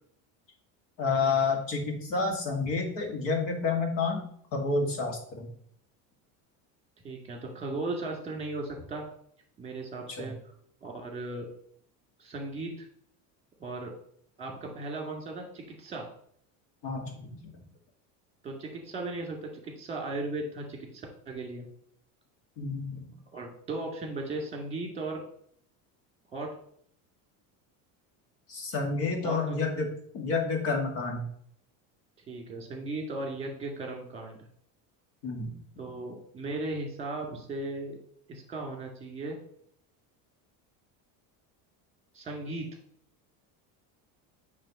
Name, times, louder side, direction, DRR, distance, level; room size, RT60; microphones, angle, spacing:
voice 1, 1.0-4.2 4.5-5.5 10.1-10.3 16.8-17.4 22.6-23.1 28.5-29.9 30.1-31.3 35.2-35.5, left 4 dB, 55° left, 3 dB, 2.1 m, -29 dB
voice 2, 7.0-9.1 9.6-10.5 10.8-11.5 12.2-12.9 13.6-13.9 14.4-16.1 18.4-21.6 23.3-25.2 26.3-26.5 29.2-29.6 32.3-34.5 35.8-38.0 38.3-39.4 42.1-42.7, right 2 dB, 15° right, 1 dB, 2.0 m, -37 dB
8.9 x 3.4 x 5.4 m, 0.65 s
cardioid pair, 175°, 41 cm